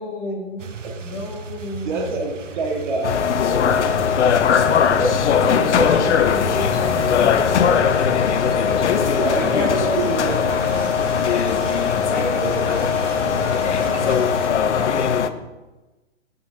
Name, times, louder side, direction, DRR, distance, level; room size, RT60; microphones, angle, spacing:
voice 1, 0.0-0.7 1.0-2.2 5.0-10.9 12.1-14.2 14.7-15.3, left 1 dB, 25° left, -2 dB, 0.8 m, -30 dB
sound 1, 0.6-14.5, right 6 dB, 85° right, 0.6 m, -35 dB
voice 2, 1.8-3.2 9.1-10.4 12.3-12.7, right 3 dB, 40° right, 1 dB, 1.4 m, -26 dB
sound 2, 3.0-15.3, left 7 dB, 70° left, 0.5 m, -19 dB
sound 3, 3.8-14.0, left 3 dB, 10° right, 1.6 m, -38 dB
11.5 x 3.9 x 2.6 m, 1.1 s
figure-of-eight pair, 130°, 37 cm